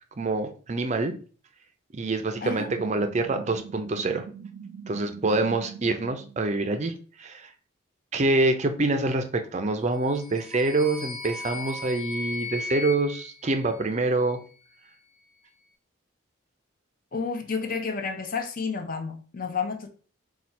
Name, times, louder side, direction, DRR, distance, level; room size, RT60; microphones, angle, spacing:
voice 1, 0.2-1.1 1.9-4.2 4.9-6.9 7.2-7.5 8.1-14.4, right 2 dB, 35° right, 8 dB, 0.5 m, -26 dB
sound 1, 2.5-6.4, right 6 dB, 85° right, 0.5 m, -42 dB
sound 2, 10.0-14.3, left 3 dB, ahead, 0.7 m, -37 dB
voice 2, 17.1-19.9, left 5 dB, 45° left, 6 dB, 0.6 m, -30 dB
4.2 x 2.4 x 4.4 m, 0.40 s
head